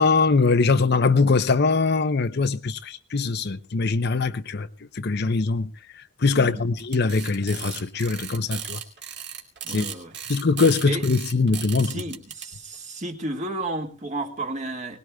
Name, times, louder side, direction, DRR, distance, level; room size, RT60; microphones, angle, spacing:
voice 1, 0.0-4.7 4.9-8.8 9.7-9.9 10.3-12.0, left 4 dB, 50° left, 0.7 m, -22 dB
sound 1, 6.8-12.5, right 9 dB, 55° right, 2.6 m, -36 dB
voice 2, 9.6-10.1 10.9-11.1 11.8-15.0, right 2 dB, 35° right, 1.8 m, -32 dB
22.5 x 19.5 x 2.3 m
head